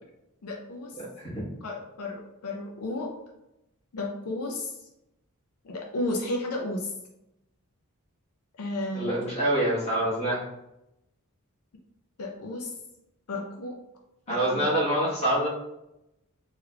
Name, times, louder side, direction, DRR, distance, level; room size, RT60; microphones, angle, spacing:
voice 1, 0.4-0.9 1.6-3.1 3.9-4.7 5.6-6.9 8.6-9.1 12.2-12.7 13.3-13.7 14.3-14.6, left 2 dB, 80° left, 1 dB, 0.5 m, -33 dB
voice 2, 0.9-1.4 8.9-10.5 14.3-15.5, right 1 dB, 30° left, -6 dB, 1.3 m, -26 dB
3.3 x 3.1 x 2.3 m, 0.86 s
head